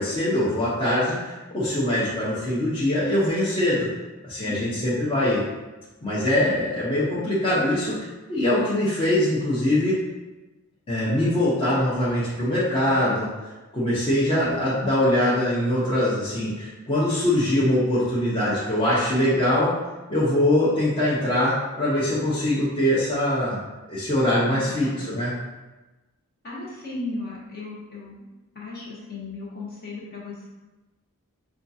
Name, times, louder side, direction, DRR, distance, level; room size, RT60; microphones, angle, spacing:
voice 1, 0.0-3.9 4.2-5.4 6.0-8.0 8.3-10.0 10.9-13.3 13.7-19.7 20.1-23.6 23.9-25.3, left 1 dB, 25° left, -10 dB, 0.8 m, -23 dB
voice 2, 24.4-25.1 26.4-28.3 28.5-30.5, left 3 dB, 45° left, -6 dB, 1.2 m, -36 dB
5.8 x 2.3 x 2.7 m, 1.1 s
head